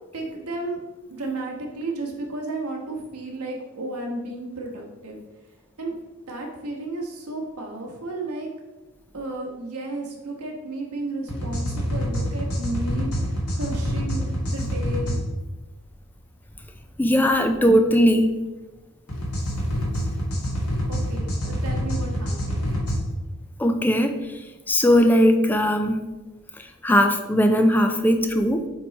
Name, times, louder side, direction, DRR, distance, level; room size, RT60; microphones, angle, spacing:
voice 1, 0.1-0.8 1.1-5.2 5.8-6.0 6.3-8.5 9.1-15.1 20.9-22.8, right 2 dB, 85° right, 0 dB, 1.3 m, -33 dB
sound 1, 11.3-15.2 19.1-23.0, equal, 90° left, 2.0 m, -26 dB
voice 2, 17.0-18.3 23.6-24.2 24.7-26.0 26.8-28.7, equal, 10° left, 6 dB, 0.4 m, -19 dB
7.6 x 3.1 x 4.1 m, 1.1 s
head